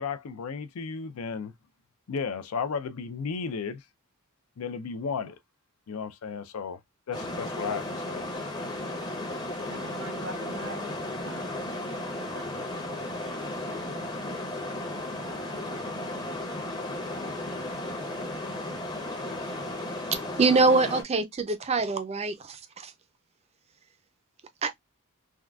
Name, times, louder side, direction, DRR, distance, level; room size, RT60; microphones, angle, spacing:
voice 1, 0.0-1.5 2.1-3.8 4.6-5.4 5.9-6.8 7.1-8.2, left 5 dB, 70° left, 0.4 m, -34 dB
sound 1, 7.1-21.0, left 1 dB, 20° left, 0.7 m, -34 dB
voice 2, 9.6-10.9 11.2-13.9 15.5-15.6 15.9-16.2, right 3 dB, 80° right, 1.0 m, -45 dB
voice 3, 20.4-22.9 24.6-24.7, right 3 dB, 30° right, 0.4 m, -24 dB
3.6 x 2.3 x 2.2 m
head